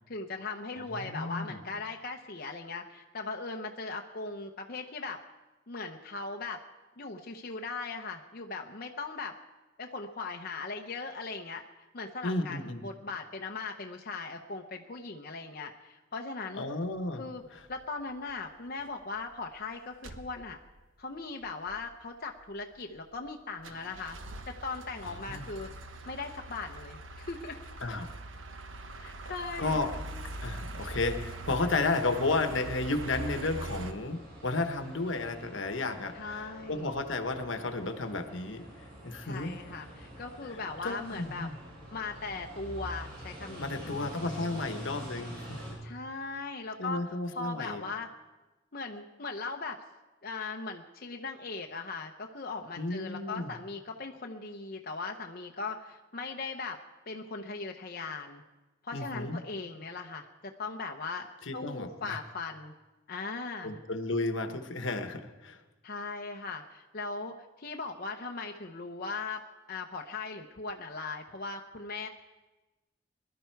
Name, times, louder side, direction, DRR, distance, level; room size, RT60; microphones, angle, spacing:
voice 1, 0.1-5.2 5.7-6.6 7.0-9.4 9.8-11.6 11.9-16.7 17.1-17.4 17.7-20.6 21.0-24.2 24.5-25.7 26.1-27.6 29.0-29.8 36.1-36.9 39.2-41.5 41.9-43.9 45.8-48.1 48.7-49.8 50.2-56.8 57.1-58.4 58.8-61.3 61.5-62.7 63.1-63.8 65.8-69.4 69.7-72.1, left 3 dB, 50° left, 3 dB, 0.8 m, -39 dB
voice 2, 0.8-1.6 12.2-12.8 16.6-17.2 25.0-25.5 27.8-28.1 29.6-29.9 30.4-38.6 39.0-39.5 40.8-41.5 43.6-45.8 46.8-47.8 52.8-53.5 58.9-59.4 61.5-62.2 63.6-65.6, left 3 dB, 75° left, 8 dB, 1.1 m, -33 dB
sound 1, 17.6-17.8 18.3-18.5 18.8-18.9 19.2-19.6 20.0-20.8 21.2-21.3 21.4-21.9 22.4-23.3 23.6-33.9, right 2 dB, 90° right, 1.1 m, -42 dB
sound 2, 32.5-45.7, right 1 dB, 50° right, 6.7 m, -47 dB
21.0 x 12.0 x 4.6 m, 1.1 s
head